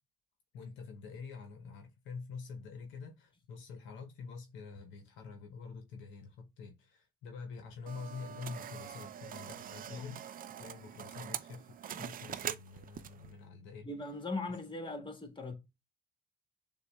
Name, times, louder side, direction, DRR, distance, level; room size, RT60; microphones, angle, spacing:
voice 1, 0.5-13.9, left 5 dB, 70° left, 0.8 m, -47 dB
sound 1, 7.9-13.3, right 9 dB, 45° right, 0.5 m, -44 dB
voice 2, 13.8-15.5, left 3 dB, 25° left, 1.5 m, -39 dB
6.6 x 2.3 x 3.2 m
hypercardioid pair, 55°, 20 cm